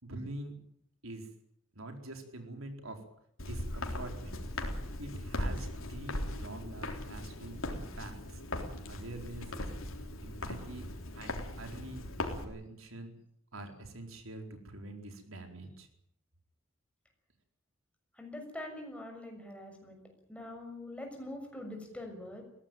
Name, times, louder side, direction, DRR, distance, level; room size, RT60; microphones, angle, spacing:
voice 1, 0.0-0.5 1.0-1.3 1.7-3.0 3.4-4.4 5.0-8.4 8.8-9.7 10.2-10.9 11.1-13.1 13.5-15.9, right 2 dB, 80° right, 5 dB, 4.5 m, -45 dB
Walk footsteps, 3.4-12.4, left 1 dB, 75° left, 3.8 m, -39 dB
voice 2, 18.2-20.0 20.3-22.4, left 1 dB, 5° left, 2 dB, 6.6 m, -44 dB
22.0 x 17.0 x 9.2 m, 0.69 s
head